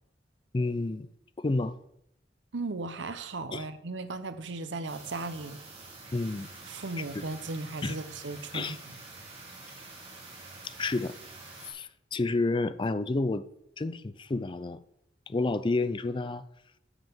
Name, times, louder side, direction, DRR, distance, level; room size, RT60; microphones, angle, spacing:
voice 1, 0.5-1.1 1.4-1.7 3.5-3.7 6.1-6.5 7.1-7.2 7.8-8.0 8.5-8.8 10.6-11.2 11.7-13.5 13.8-14.8 15.3-16.4, left 3 dB, 25° left, 0.4 m, -30 dB
voice 2, 2.5-5.6 6.7-9.0, right 3 dB, 75° right, 0.8 m, -36 dB
sound 1, 4.9-11.7, right 3 dB, 30° right, 2.4 m, -47 dB
8.1 x 5.7 x 7.1 m
head